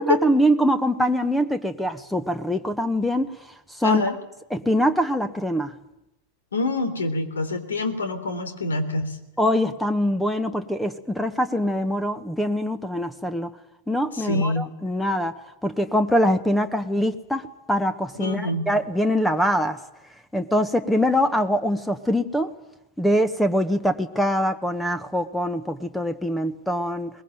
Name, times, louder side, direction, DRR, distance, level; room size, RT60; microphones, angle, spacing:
voice 1, 0.0-3.3 3.8-4.0 4.5-5.7 9.4-13.5 13.9-15.3 15.6-19.8 20.3-22.5 23.0-27.1, equal, 5° left, 11 dB, 1.2 m, -23 dB
voice 2, 3.8-4.1 6.5-9.2 14.1-14.7 18.1-18.7, left 2 dB, 75° left, 9 dB, 3.3 m, -26 dB
22.0 x 21.0 x 9.0 m, 0.88 s
figure-of-eight pair, 95°, 0 cm